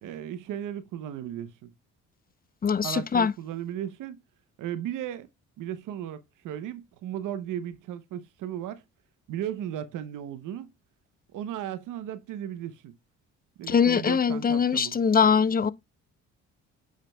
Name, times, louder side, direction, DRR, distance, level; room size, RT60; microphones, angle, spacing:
voice 1, 0.0-1.7 2.8-4.2 4.6-5.3 5.6-8.8 9.3-10.7 11.3-13.0 13.6-14.9, right 11 dB, 75° right, 0.8 m, -35 dB
voice 2, 2.6-3.3 13.7-15.7, left 6 dB, 30° left, 0.6 m, -22 dB
9.1 x 5.2 x 2.2 m
supercardioid pair, 70°, 32 cm